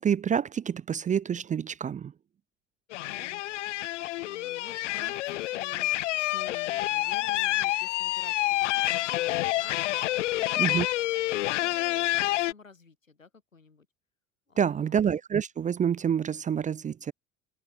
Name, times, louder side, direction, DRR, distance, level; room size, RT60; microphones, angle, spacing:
voice 1, 0.0-2.1 10.6-10.9 14.6-17.1, right 8 dB, 20° right, 0.6 m, -27 dB
sound 1, 2.9-12.5, left 17 dB, 70° left, 0.8 m, -28 dB
voice 2, 3.0-3.4 4.2-9.8 10.3-10.9 11.4-13.9 14.5-15.1, left 4 dB, 85° left, 5.3 m, -51 dB
figure-of-eight pair, 70°, 38 cm